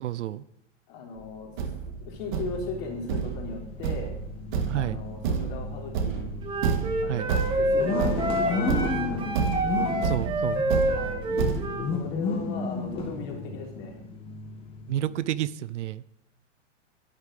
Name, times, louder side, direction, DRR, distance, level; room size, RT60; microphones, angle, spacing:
voice 1, 0.0-0.4 4.7-5.0 7.1-7.3 10.0-10.6 14.9-16.0, right 12 dB, 70° right, 18 dB, 0.7 m, -30 dB
voice 2, 0.9-1.5 2.0-4.1 4.7-6.3 7.0-9.3 10.9-11.2 11.9-14.0, left 4 dB, 35° left, -1 dB, 4.0 m, -37 dB
Thump thud, 1.2-1.3 1.6-11.6, right 6 dB, 40° right, 1.7 m, -30 dB
sound 1, 1.9-15.3, left 3 dB, 15° left, 1.9 m, -34 dB
Wind instrument woodwind instrument, 6.4-11.9, right 1 dB, 15° right, 1.6 m, -28 dB
11.0 x 10.5 x 6.5 m, 0.75 s
hypercardioid pair, 155°, 37 cm